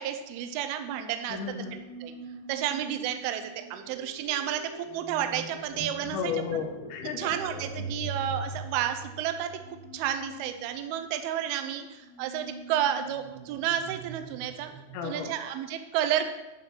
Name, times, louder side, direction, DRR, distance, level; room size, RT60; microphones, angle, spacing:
voice 1, 0.0-1.4 2.0-2.1 2.5-6.3 7.2-9.5 9.9-14.7 15.0-16.3, right 10 dB, 85° right, 7 dB, 2.2 m, -31 dB
voice 2, 1.3-1.8 6.1-7.3 14.9-15.3, left 7 dB, 85° left, 4 dB, 3.2 m, -33 dB
sound 1, 1.4-15.1, right 3 dB, 70° right, 0.4 m, -43 dB
sound 2, 5.6-9.1 9.3-9.4, left 3 dB, 55° left, 4.1 m, -45 dB
10.5 x 4.3 x 5.9 m, 1.1 s
omnidirectional pair, 5.1 m